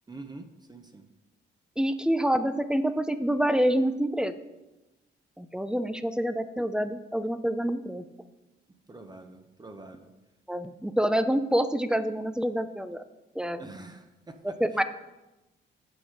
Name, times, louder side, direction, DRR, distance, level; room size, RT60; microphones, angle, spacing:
voice 1, 0.1-1.0 8.9-10.1 13.6-14.6, right 2 dB, 20° right, 6 dB, 0.9 m, -45 dB
voice 2, 1.8-4.3 5.4-8.0 10.5-13.0 13.4-13.6 14.6-14.8, equal, 5° right, 11 dB, 0.6 m, -27 dB
7.9 x 5.6 x 6.5 m, 1.0 s
cardioid pair, 90°, 20 cm